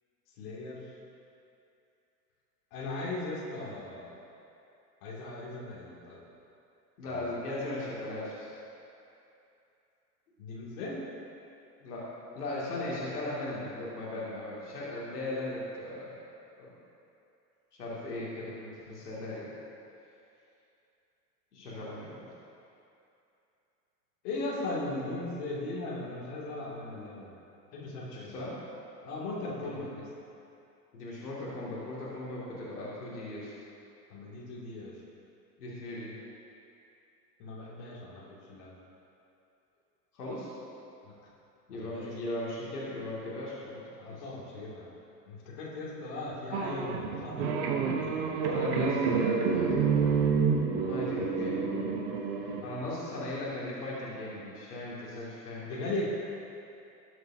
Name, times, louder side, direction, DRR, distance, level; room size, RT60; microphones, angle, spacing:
voice 1, 0.4-0.8 2.7-4.2 5.0-6.2 10.4-11.0 24.2-27.3 27.7-28.3 29.0-30.0 34.1-34.9 37.4-38.7 41.0-41.1 41.8-42.1 44.0-44.9 45.3-48.3 50.8-51.1 52.6-52.8 55.6-56.0, left 2 dB, 50° left, -5 dB, 2.7 m, -38 dB
voice 2, 7.0-8.5 11.8-12.0 12.3-16.2 16.6-16.7 17.8-19.5 21.5-22.3 28.0-28.6 29.6-29.7 30.9-33.5 35.6-36.1 40.1-40.5 41.7-44.2 48.4-49.8 50.9-51.6 52.6-55.9, left 1 dB, 65° left, -7 dB, 2.5 m, -37 dB
sound 1, 46.5-52.6, right 5 dB, 45° right, 1.2 m, -28 dB
19.5 x 7.8 x 2.8 m, 2.7 s
figure-of-eight pair, 85°, 49 cm